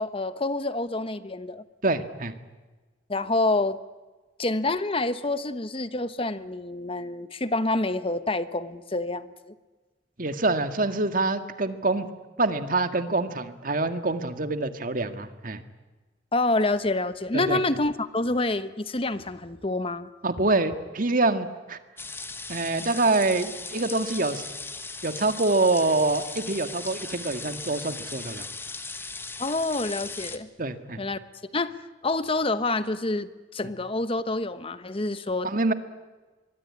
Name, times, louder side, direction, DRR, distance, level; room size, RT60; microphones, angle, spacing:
voice 1, 0.0-1.6 3.1-3.8 4.4-9.5 16.3-20.1 29.4-30.5 31.0-31.2 31.5-35.5, left 2 dB, 30° left, 13 dB, 1.1 m, -27 dB
voice 2, 1.8-2.3 10.2-12.1 12.4-15.6 17.3-17.6 20.2-21.8 22.5-24.4 25.0-28.5 30.6-31.0 35.4-35.7, right 2 dB, 50° right, 9 dB, 1.9 m, -25 dB
sound 1, 22.0-30.4, left 3 dB, 15° left, 1.5 m, -38 dB
25.0 x 22.0 x 9.9 m, 1.3 s
head